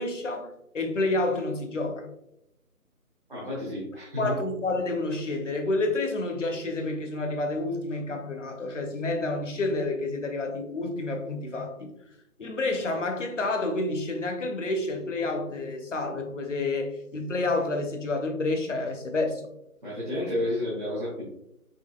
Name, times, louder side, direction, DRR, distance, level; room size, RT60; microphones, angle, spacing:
voice 1, 0.0-2.1 4.2-11.9 12.4-19.4, left 2 dB, 55° left, 0.8 m, -29 dB
voice 2, 3.3-4.3 19.8-21.3, left 1 dB, 35° right, 1.0 m, -31 dB
5.6 x 2.9 x 2.2 m
figure-of-eight pair, 165°, 45 cm